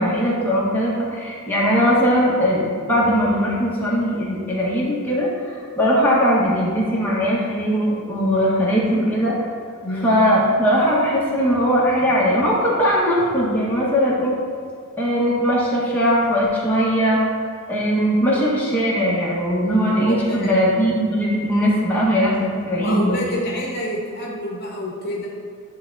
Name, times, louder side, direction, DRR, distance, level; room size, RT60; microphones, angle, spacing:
voice 1, 0.0-9.3 10.0-14.3 15.0-17.2 17.7-23.2, equal, 10° left, -6 dB, 1.2 m, -19 dB
voice 2, 9.8-10.2 20.1-20.6 22.8-25.3, left 1 dB, 50° left, -3 dB, 0.9 m, -28 dB
10.0 x 3.7 x 2.6 m, 2.2 s
head